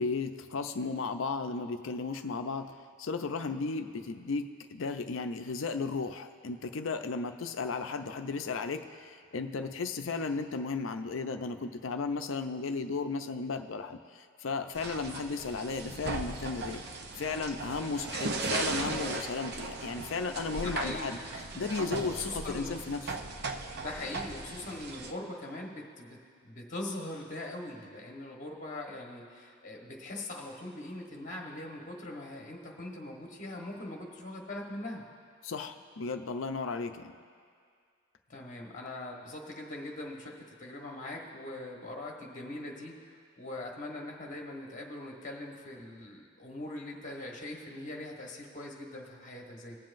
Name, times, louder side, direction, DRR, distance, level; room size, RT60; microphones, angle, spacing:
voice 1, 0.0-2.7 3.0-16.8 17.2-21.2 21.5-23.0 35.4-37.1, left 4 dB, 70° left, 7 dB, 0.5 m, -35 dB
sound 1, 14.8-25.1, right 3 dB, 50° right, 0.6 m, -37 dB
voice 2, 20.6-21.2 22.0-22.8 23.7-35.0 38.3-43.0 43.4-49.8, left 2 dB, 40° left, 0 dB, 1.2 m, -41 dB
21.5 x 7.5 x 2.6 m, 2.2 s
head